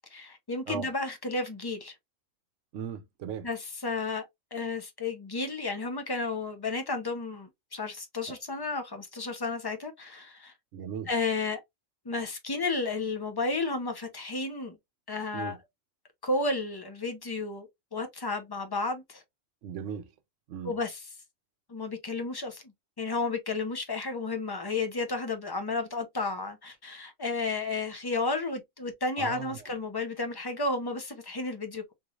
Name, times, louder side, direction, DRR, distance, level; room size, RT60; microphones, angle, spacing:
voice 1, 0.1-1.9 3.4-4.3 4.5-10.5 11.1-11.6 12.0-14.8 15.1-15.6 16.2-19.2 20.6-21.1 21.7-22.6 23.0-31.9, left 3 dB, 30° left, 0.4 m, -32 dB
voice 2, 2.7-3.5 8.3-8.4 10.7-11.1 15.3-15.6 19.6-20.1 20.5-20.7 29.2-29.6, right 8 dB, 70° right, 0.9 m, -37 dB
3.7 x 3.1 x 2.4 m
omnidirectional pair, 1.4 m